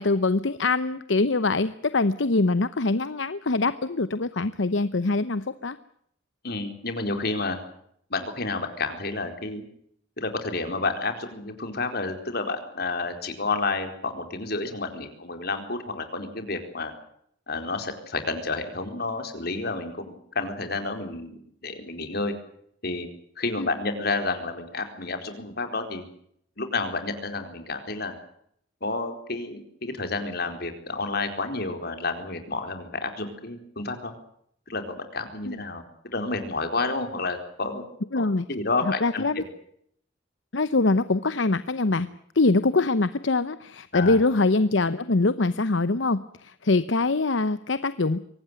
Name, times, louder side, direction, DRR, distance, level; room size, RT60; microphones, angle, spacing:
voice 1, 0.0-5.8 23.6-23.7 35.5-35.6 38.1-38.5 38.8-39.4 40.5-42.1 42.3-48.2, left 3 dB, 75° left, 14 dB, 0.9 m, -23 dB
voice 2, 6.4-7.6 8.1-9.6 10.2-16.9 17.5-22.3 22.8-23.1 23.4-26.0 26.6-28.1 28.8-34.1 34.7-35.8 36.1-37.8 38.1-39.2 43.9-44.2, left 3 dB, 55° left, 7 dB, 4.4 m, -30 dB
24.0 x 18.0 x 9.1 m, 0.69 s
head